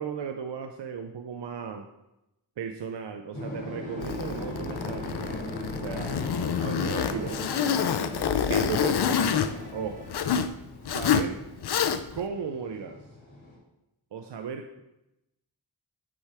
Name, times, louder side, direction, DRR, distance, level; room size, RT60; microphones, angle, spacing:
voice 1, 0.0-1.9 2.6-6.2 6.6-7.4 8.5-9.4 9.7-10.1 10.8-11.5 12.1-13.0 14.1-14.8, right 6 dB, 70° right, 6 dB, 0.5 m, -36 dB
sound 1, 3.3-13.6, left 1 dB, 85° left, 2.4 m, -39 dB
sound 2, 3.7-10.5, right 2 dB, 15° right, 1.5 m, -45 dB
Zipper (clothing), 4.0-10.5 10.8-11.3 11.6-12.2, left 8 dB, 60° left, 0.5 m, -27 dB
8.5 x 4.6 x 3.4 m, 0.92 s
wide cardioid pair, 50°, 44 cm